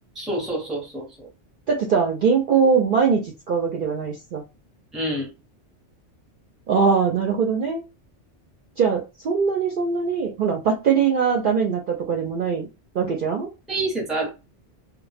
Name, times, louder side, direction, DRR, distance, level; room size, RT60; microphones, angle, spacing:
voice 1, 0.2-1.1 4.9-5.3 13.7-14.3, right 1 dB, ahead, 0.6 m, -27 dB
voice 2, 1.7-4.4 6.7-7.8 8.8-12.7 12.9-13.5, right 6 dB, 60° right, 0.6 m, -21 dB
2.2 x 2.0 x 3.2 m
omnidirectional pair, 1.2 m